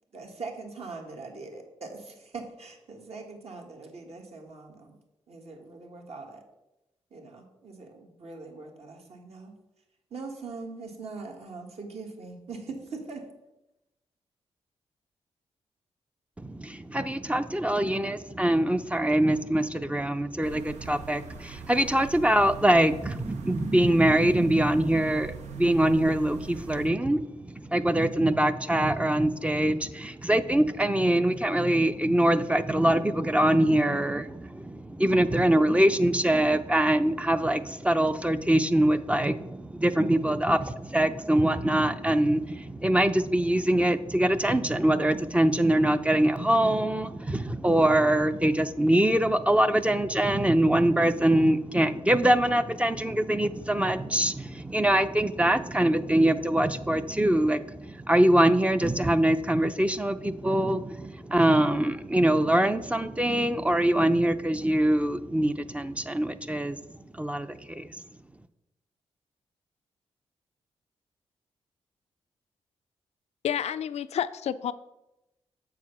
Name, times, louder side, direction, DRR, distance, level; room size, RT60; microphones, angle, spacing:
voice 1, 0.1-5.0 5.3-6.4 7.1-9.5 10.1-13.3, right 3 dB, 60° right, 2 dB, 1.7 m, -42 dB
voice 2, 16.4-68.0, right 1 dB, 10° right, 10 dB, 0.5 m, -24 dB
sound 1, 20.4-26.9, right 6 dB, 80° right, 0.8 m, -42 dB
voice 3, 73.4-74.7, left 9 dB, 65° left, 13 dB, 0.4 m, -29 dB
7.1 x 4.8 x 5.8 m, 0.93 s
cardioid pair, 60°, 12 cm